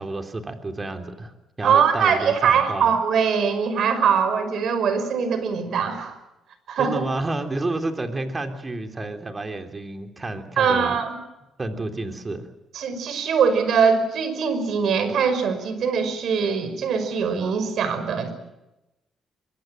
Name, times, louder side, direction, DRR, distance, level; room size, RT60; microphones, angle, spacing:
voice 1, 0.0-2.9 6.8-11.0 11.6-12.5, right 2 dB, 25° right, 6 dB, 3.5 m, -30 dB
voice 2, 1.6-6.1 6.7-7.0 10.6-11.1 12.7-18.3, right 6 dB, 70° right, 10 dB, 5.6 m, -22 dB
24.5 x 23.0 x 7.8 m, 0.96 s
cardioid pair, 90°, 0 cm